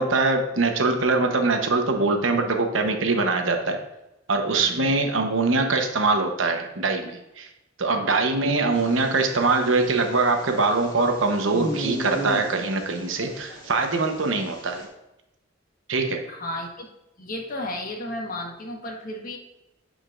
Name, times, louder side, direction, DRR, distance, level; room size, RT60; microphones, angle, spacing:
voice 1, 0.0-3.8 4.3-7.5 7.8-14.9 15.9-16.2, right 3 dB, 75° right, 4 dB, 1.0 m, -23 dB
voice 2, 4.5-4.9 7.9-8.1 13.2-14.0 16.3-16.9 17.2-19.4, left 1 dB, 45° left, 1 dB, 1.4 m, -34 dB
sound 1, 8.7-14.9, equal, 20° left, 2.1 m, -37 dB
9.9 x 5.0 x 2.5 m, 0.93 s
head